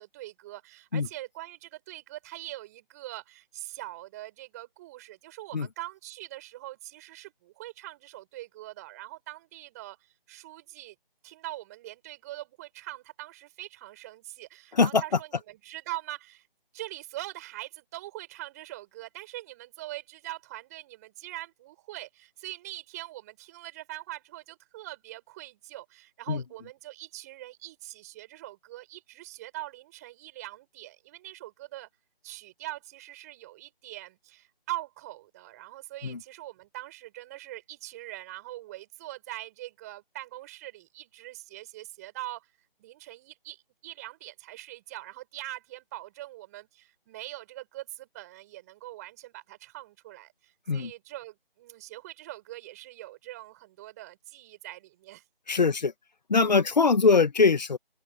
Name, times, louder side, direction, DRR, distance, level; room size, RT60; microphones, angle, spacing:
voice 1, 0.0-10.0 10.3-10.9 11.2-16.5 16.7-31.9 32.2-42.5 42.8-55.2, right 16 dB, 15° right, 7.7 m, -42 dB
voice 2, 14.7-15.0 26.3-26.4 36.0-36.2 50.7-50.9 55.5-55.9 56.3-57.8, left 4 dB, 45° left, 2.0 m, -22 dB
open air
figure-of-eight pair, 160°, 30 cm